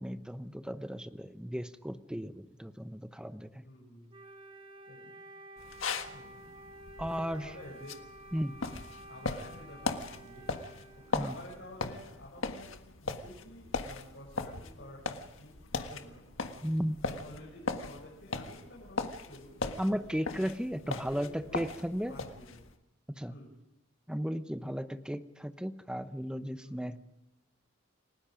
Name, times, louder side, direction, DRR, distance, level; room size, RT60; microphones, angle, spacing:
voice 1, 0.0-3.6 7.0-7.5 8.3-8.6 11.1-11.4 16.6-17.0 19.8-22.1 23.1-23.3 24.1-27.0, equal, 5° right, 10 dB, 0.9 m, -35 dB
voice 2, 3.6-4.1 4.9-5.1 6.1-6.5 7.3-8.0 9.0-10.5 11.1-12.7 13.0-20.2 20.8-21.7 22.1-22.6 23.3-23.5 26.6-27.0, left 1 dB, 60° left, -3 dB, 7.3 m, -50 dB
Wind instrument woodwind instrument, 4.1-11.8, right 1 dB, 25° right, 1.6 m, -51 dB
sound 1, 5.6-22.7, left 3 dB, 80° left, 1.6 m, -39 dB
30.0 x 18.5 x 5.2 m, 0.87 s
head